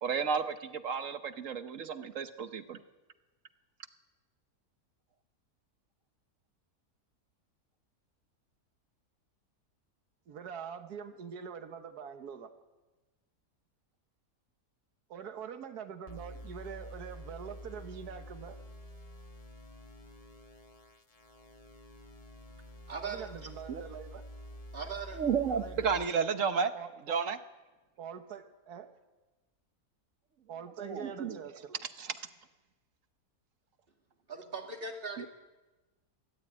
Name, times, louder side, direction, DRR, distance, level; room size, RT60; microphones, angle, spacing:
voice 1, 0.0-2.8 23.7-23.8 25.1-26.7 27.1-27.4 30.8-31.4 32.0-32.1 35.2-35.3, right 6 dB, 60° right, 10 dB, 1.3 m, -32 dB
voice 2, 10.3-12.5 15.1-18.6 23.0-24.2 25.5-26.3 26.7-27.2 28.0-28.9 30.5-31.8, right 7 dB, 80° right, 7 dB, 1.7 m, -44 dB
sound 1, 16.1-26.1, equal, 25° left, 1.2 m, -48 dB
voice 3, 22.9-23.3 24.7-25.2 34.3-35.3, right 4 dB, 35° right, 3 dB, 2.4 m, -39 dB
23.5 x 13.5 x 8.9 m, 1.2 s
omnidirectional pair, 1.6 m